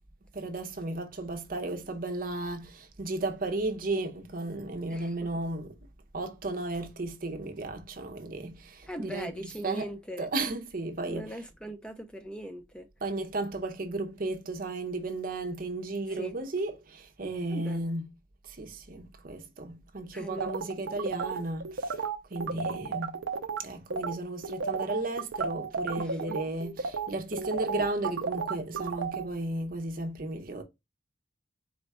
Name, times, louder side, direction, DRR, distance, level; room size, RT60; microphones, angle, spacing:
voice 1, 0.3-5.9 6.1-9.3 9.6-9.9 10.2-11.3 13.0-18.1 18.4-22.0 22.3-23.2 23.6-30.6, right 2 dB, 50° right, 0.7 m, -34 dB
voice 2, 4.9-5.3 8.9-10.3 11.0-12.9 16.1-16.4 17.5-17.8 20.1-20.5 26.0-26.4, right 1 dB, 5° left, 0.6 m, -40 dB
sound 1, 20.4-23.6 23.9-24.1 24.4-29.2, right 5 dB, 85° right, 0.6 m, -33 dB
4.2 x 2.3 x 4.1 m
head